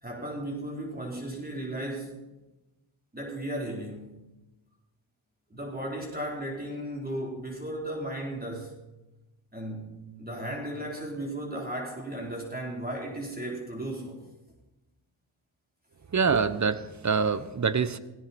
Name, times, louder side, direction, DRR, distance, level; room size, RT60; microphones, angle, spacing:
voice 1, 0.0-2.2 3.1-4.1 5.5-8.8 9.5-14.2, right 1 dB, 20° right, -2 dB, 3.9 m, -35 dB
voice 2, 16.1-18.0, right 5 dB, 35° right, 13 dB, 1.0 m, -25 dB
17.5 x 16.5 x 4.3 m, 1.0 s
cardioid pair, 75°, 49 cm